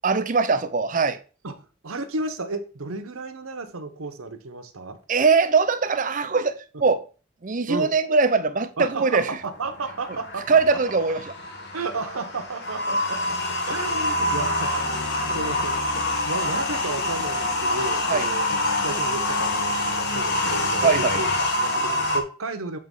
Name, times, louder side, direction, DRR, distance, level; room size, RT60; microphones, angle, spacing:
voice 1, 0.0-1.2 5.1-7.0 7.4-9.3 10.5-11.2 18.1-18.3 20.8-21.2, right 4 dB, 40° right, 0.5 m, -21 dB
voice 2, 1.4-5.0 7.7-7.9 8.8-10.8 11.7-13.4 13.7-15.1 15.3-15.8 16.2-22.8, right 3 dB, 80° right, 1.0 m, -33 dB
sound 1, 9.4-22.2, left 1 dB, 50° left, 1.2 m, -26 dB
7.7 x 3.1 x 5.3 m
head